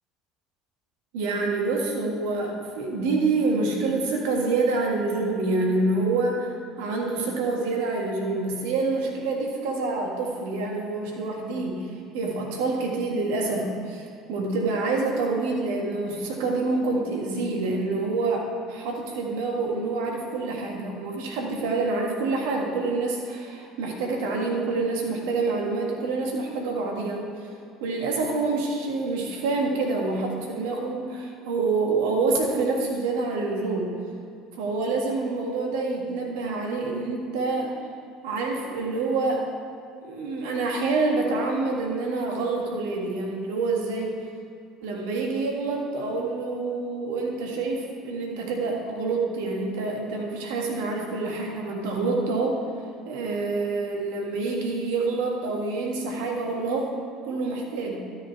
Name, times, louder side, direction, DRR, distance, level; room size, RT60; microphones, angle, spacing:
voice 1, 1.1-6.5 6.8-11.9 12.1-27.3 27.8-33.9 34.6-37.7 38.2-39.5 40.0-44.2 44.8-52.6 53.1-56.9 57.2-58.0, right 3 dB, 70° right, 0 dB, 1.7 m, -27 dB
12.5 x 6.4 x 4.6 m, 2.6 s
hypercardioid pair, 70°, 0 cm